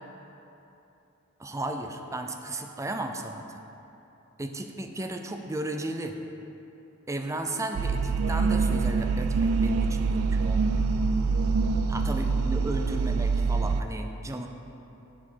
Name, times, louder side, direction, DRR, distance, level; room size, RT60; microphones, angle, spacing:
voice 1, 1.4-3.4 4.4-6.2 7.1-10.9 11.9-14.5, right 2 dB, 15° right, 5 dB, 0.5 m, -34 dB
sound 1, 7.7-13.8, right 4 dB, 80° right, 0.4 m, -25 dB
10.5 x 4.9 x 5.6 m, 2.9 s
head